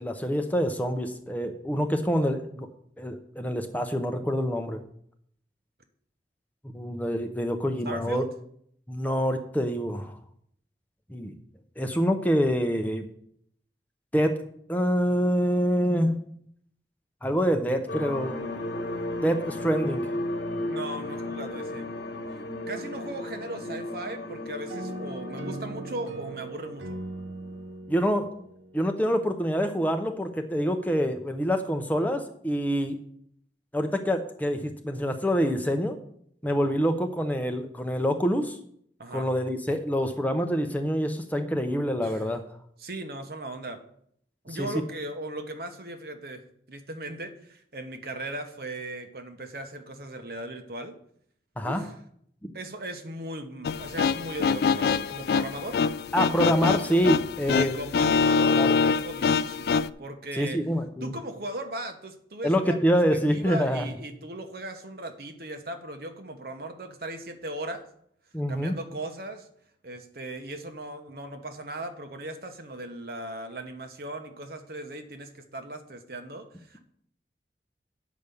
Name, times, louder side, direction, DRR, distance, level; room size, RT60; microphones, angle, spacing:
voice 1, 0.0-2.7 3.0-4.8 6.7-8.3 8.9-10.2 11.1-11.3 11.8-13.0 14.1-14.3 14.7-16.2 17.2-18.3 19.2-20.1 27.9-28.3 28.7-33.0 33.7-36.0 36.4-38.6 39.1-42.4 44.6-44.7 51.6-51.8 52.4-52.5 56.1-57.8 58.6-58.7 60.4-61.1 62.4-63.9 68.3-68.7, equal, 10° left, 6 dB, 0.7 m, -26 dB
voice 2, 7.8-8.3 20.7-21.9 22.7-27.0 39.0-39.3 42.0-42.3 42.8-43.8 44.4-51.0 51.6-52.0 52.5-55.8 57.5-60.6 61.0-67.8 68.5-69.5 69.8-76.8, right 1 dB, 60° right, 6 dB, 1.1 m, -38 dB
sound 1, 17.9-27.7, left 1 dB, 80° left, 1.2 m, -35 dB
sound 2, 24.7-29.3, right 2 dB, 90° right, 0.7 m, -40 dB
sound 3, 53.6-59.9, left 5 dB, 60° left, 0.3 m, -24 dB
9.4 x 5.1 x 6.9 m, 0.68 s
head